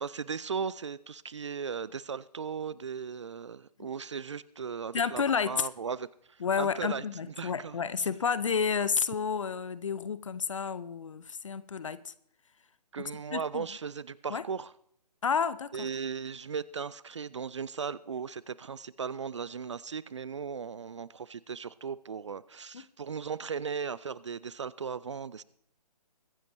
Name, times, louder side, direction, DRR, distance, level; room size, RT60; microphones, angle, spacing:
voice 1, 0.0-7.8 12.9-14.7 15.7-25.4, right 6 dB, 45° right, 20 dB, 0.4 m, -37 dB
voice 2, 4.9-5.7 6.4-12.1 13.3-13.7 14.3-14.4 15.2-15.9 22.7-22.8, left 6 dB, 50° left, 16 dB, 0.6 m, -30 dB
22.5 x 10.0 x 3.1 m, 0.67 s
figure-of-eight pair, 140°, 21 cm